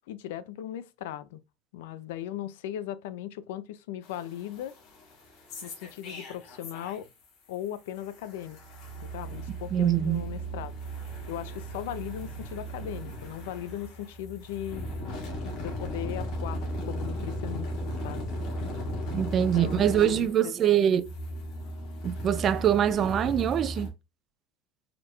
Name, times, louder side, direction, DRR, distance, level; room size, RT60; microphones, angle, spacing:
voice 1, 0.1-1.4 1.7-4.7 5.6-7.1 7.5-8.6 9.0-10.7 11.3-14.9 15.6-17.7 18.0-18.3 18.6-18.7 19.4-21.0, left 11 dB, 85° left, 0.5 m, -38 dB
sound 1, 4.0-7.3 7.5-23.9, equal, 50° left, 1.9 m, -37 dB
voice 2, 9.7-10.2 19.1-21.1 22.0-23.9, right 10 dB, 25° right, 0.3 m, -24 dB
5.0 x 3.0 x 2.3 m
cardioid pair, 170°, 0 cm